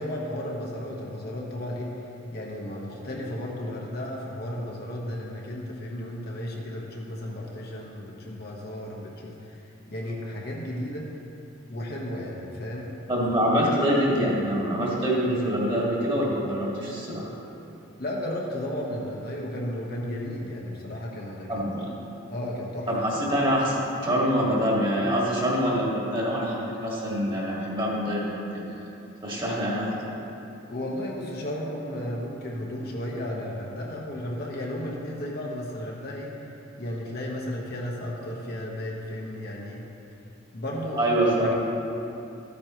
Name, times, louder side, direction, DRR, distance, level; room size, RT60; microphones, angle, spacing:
voice 1, 0.0-2.0 2.3-11.1 11.7-13.2 18.0-21.7 22.3-23.2 29.4-29.5 30.7-36.4 36.8-39.8 40.5-41.5, left 1 dB, 50° left, -3 dB, 1.2 m, -34 dB
voice 2, 13.1-17.3 21.5-21.9 22.9-28.8 29.2-30.1 41.0-41.5, equal, 25° right, -5 dB, 1.9 m, -25 dB
13.5 x 8.5 x 3.1 m, 2.8 s
head